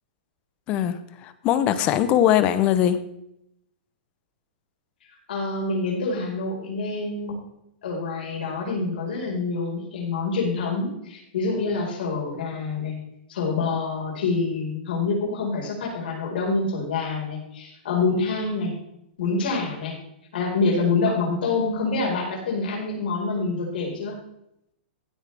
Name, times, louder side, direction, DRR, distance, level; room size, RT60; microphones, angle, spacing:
voice 1, 0.7-3.0, left 11 dB, 20° left, 0.6 m, -21 dB
voice 2, 5.3-7.4 7.8-13.0 13.3-18.7 19.2-20.0 20.3-24.2, left 3 dB, 65° left, 4.8 m, -26 dB
15.5 x 8.9 x 3.4 m
supercardioid pair, 175°, 6 cm